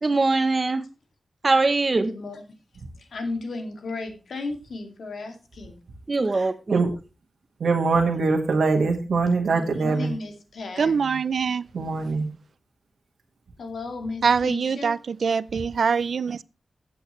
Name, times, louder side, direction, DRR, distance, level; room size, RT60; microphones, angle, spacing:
voice 1, 0.0-0.8 1.4-2.1 6.1-6.8, right 3 dB, 30° right, 0.8 m, -22 dB
voice 2, 2.1-2.4 3.0-5.8 9.6-11.0 13.6-14.9, left 3 dB, 90° left, 2.4 m, -34 dB
voice 3, 6.3-6.9 7.6-10.1 11.7-12.3, right 4 dB, 85° right, 1.6 m, -23 dB
voice 4, 10.8-11.6 14.2-16.4, right 6 dB, 70° right, 0.4 m, -23 dB
15.0 x 7.9 x 3.2 m
wide cardioid pair, 165°, 0 cm